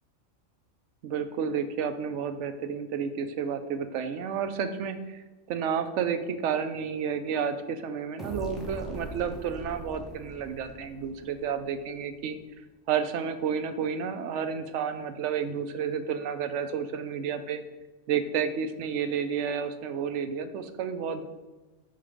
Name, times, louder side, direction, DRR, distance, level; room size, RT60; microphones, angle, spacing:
voice 1, 1.0-5.2 5.5-12.4 12.9-17.6 18.1-21.2, right 7 dB, 75° right, 9 dB, 0.9 m, -31 dB
sound 1, 8.2-11.8, right 1 dB, ahead, 0.7 m, -41 dB
5.6 x 3.7 x 4.9 m, 1.2 s
omnidirectional pair, 1.3 m